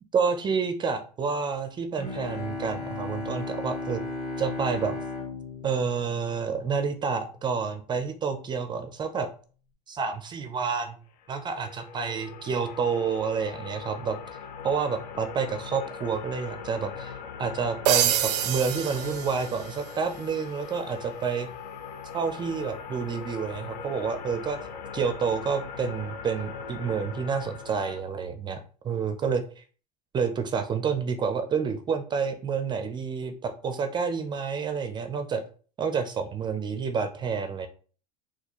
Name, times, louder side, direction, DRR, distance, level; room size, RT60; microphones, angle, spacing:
voice 1, 0.1-4.0 4.4-4.9 5.6-9.3 9.9-11.0 11.3-14.2 14.6-17.1 17.4-21.5 22.1-24.6 24.9-29.6 30.1-35.4 35.8-37.7, right 5 dB, 20° right, 8 dB, 0.4 m, -29 dB
Bowed string instrument, 1.9-7.1, left 3 dB, 25° left, 1.4 m, -36 dB
sound 1, 11.2-28.0, left 6 dB, 80° left, 0.6 m, -40 dB
sound 2, 17.8-19.9, right 11 dB, 90° right, 0.4 m, -26 dB
4.1 x 2.3 x 2.9 m, 0.40 s
supercardioid pair, 115°, 20 cm